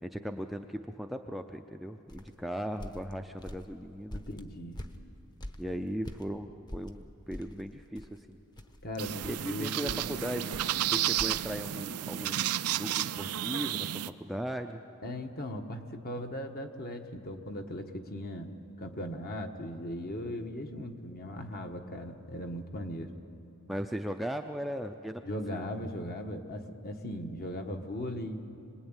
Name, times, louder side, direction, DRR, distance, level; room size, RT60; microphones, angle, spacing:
voice 1, 0.0-4.2 5.6-8.4 9.2-10.5 10.9-14.8 23.7-25.2 25.5-25.7, equal, ahead, 4 dB, 0.5 m, -38 dB
sound 1, 2.1-6.3 6.7-11.4, equal, 20° left, 1.0 m, -44 dB
voice 2, 4.1-4.8 8.8-10.0 10.5-10.8 15.0-18.5 18.8-23.1 25.2-28.5, left 1 dB, 45° left, 5 dB, 1.5 m, -38 dB
sound 2, 9.0-14.1, right 12 dB, 90° right, 0.6 m, -32 dB
25.5 x 20.0 x 9.0 m, 2.7 s
head